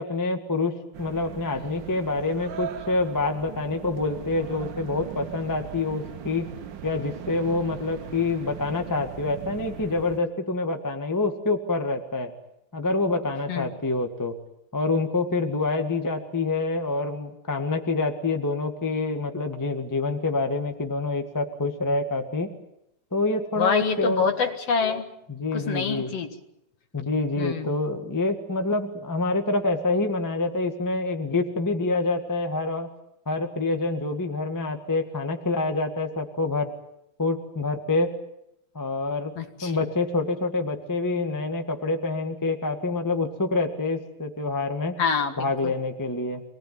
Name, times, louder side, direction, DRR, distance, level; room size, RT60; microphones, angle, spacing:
voice 1, 0.0-6.5 6.8-12.3 12.7-14.4 14.7-22.5 23.1-24.3 25.3-26.1 26.9-32.9 33.2-36.7 37.2-38.1 38.7-39.3 39.6-45.0 45.4-46.4, left 3 dB, 10° left, 5 dB, 1.2 m, -27 dB
sound 1, 0.9-10.2, right 9 dB, 60° right, 1.2 m, -39 dB
voice 2, 23.6-25.1 25.5-26.4 27.4-27.8 39.4-39.9 45.0-45.7, left 6 dB, 55° left, 7 dB, 2.6 m, -26 dB
25.5 x 19.5 x 9.4 m, 0.80 s
omnidirectional pair, 3.5 m